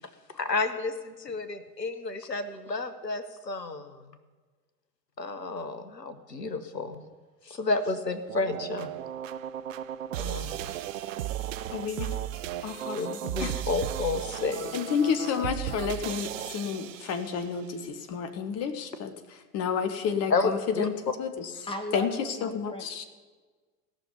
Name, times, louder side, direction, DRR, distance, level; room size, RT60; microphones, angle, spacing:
voice 1, 0.3-4.0 5.2-7.0 7.5-8.9 10.2-10.7 12.9-14.8 20.3-20.9, left 3 dB, 85° left, 1.1 m, -31 dB
sound 1, 8.3-17.5, right 11 dB, 50° right, 0.8 m, -35 dB
voice 2, 11.7-12.2 12.6-13.6 14.7-19.1 19.5-21.4 21.9-22.1 22.4-23.0, left 6 dB, 30° left, 1.3 m, -30 dB
voice 3, 21.7-23.0, left 1 dB, 10° left, 1.9 m, -37 dB
17.0 x 6.5 x 9.6 m
figure-of-eight pair, 85°, 48 cm